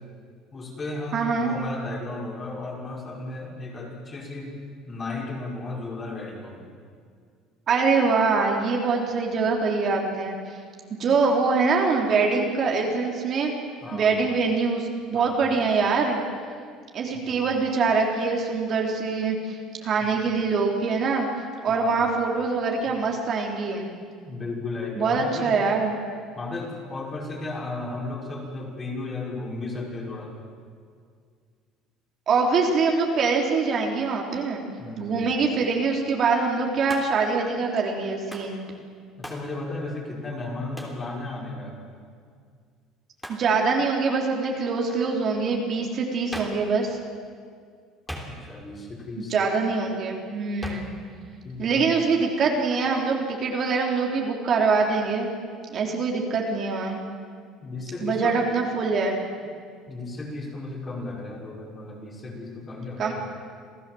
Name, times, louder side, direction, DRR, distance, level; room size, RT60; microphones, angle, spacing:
voice 1, 0.5-4.5 4.9-6.7 13.8-14.1 15.1-15.5 17.1-17.5 21.7-22.1 24.3-25.5 26.4-30.3 34.8-35.2 39.2-41.7 48.2-49.3 51.4-51.9 57.6-58.4 59.9-63.1, left 2 dB, 25° left, -2 dB, 5.6 m, -34 dB
voice 2, 1.1-1.5 7.7-10.6 10.9-13.5 13.9-16.2 16.9-21.3 21.6-23.9 25.0-25.9 32.3-34.6 35.0-38.6 43.3-47.0 49.2-50.9 51.6-55.3 55.7-57.0 58.0-59.2 63.0-63.1, right 4 dB, 45° right, 1 dB, 3.2 m, -24 dB
Hands, 36.9-37.3 38.3-38.6 39.2-39.5 40.8-41.0 43.2-43.5 46.3-46.7 48.1-48.7 50.6-51.0, equal, 5° left, 3.3 m, -38 dB
27.5 x 16.0 x 7.7 m, 2.1 s
cardioid pair, 130°, 0 cm